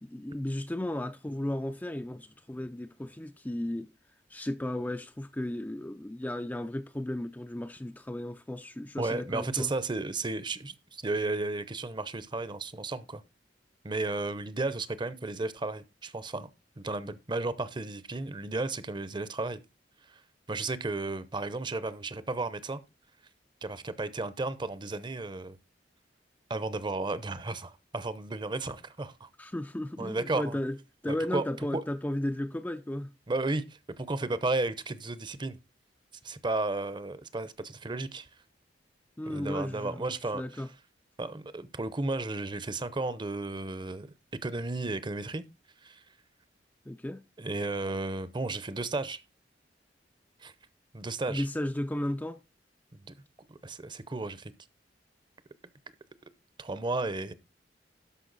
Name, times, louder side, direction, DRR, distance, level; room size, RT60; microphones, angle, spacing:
voice 1, 0.0-3.9 4.3-9.7 29.4-30.8 31.0-33.1 39.2-40.1 40.3-40.7 46.9-47.2 51.3-52.4, left 1 dB, 10° left, 0.4 m, -34 dB
voice 2, 9.0-13.2 13.8-16.5 16.8-19.6 20.5-22.8 23.6-25.6 26.5-29.3 30.0-30.5 31.1-31.4 31.7-31.8 33.3-35.6 36.2-38.3 39.3-40.6 41.2-44.1 44.4-45.4 45.8-46.0 47.4-49.2 50.4-50.5 50.9-51.5 53.0-53.1 53.5-54.5 56.6-57.3, right 2 dB, 25° right, 0.7 m, -33 dB
12.5 x 5.4 x 4.0 m
head